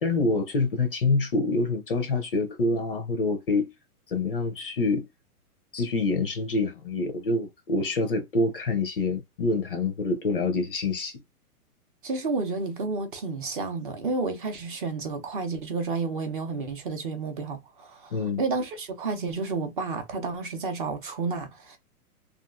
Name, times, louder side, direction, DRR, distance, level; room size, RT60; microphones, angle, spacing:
voice 1, 0.0-3.7 4.1-5.1 5.7-11.2 18.1-18.4, left 3 dB, 40° left, 0.4 m, -26 dB
voice 2, 12.0-21.8, right 4 dB, 35° right, 0.5 m, -31 dB
2.9 x 2.4 x 2.3 m
hypercardioid pair, 160°, 45 cm